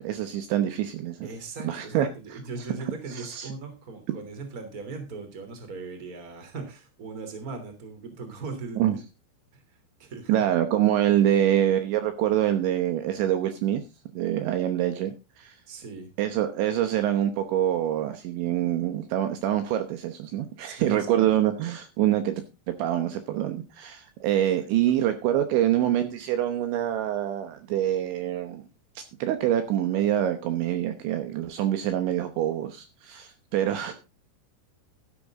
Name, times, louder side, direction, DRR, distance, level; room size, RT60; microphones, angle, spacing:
voice 1, 0.0-1.3 1.6-2.1 3.1-3.5 8.8-9.0 10.3-13.8 14.1-15.5 16.2-22.4 22.7-28.6 29.0-33.9, right 11 dB, 75° right, 8 dB, 3.1 m, -25 dB
voice 2, 1.2-9.0 9.5-9.6 10.0-10.4 15.7-16.1 20.6-21.3 24.9-25.0 33.9-34.0, right 4 dB, 25° right, 6 dB, 2.5 m, -39 dB
13.0 x 11.5 x 3.7 m, 0.28 s
omnidirectional pair, 5.8 m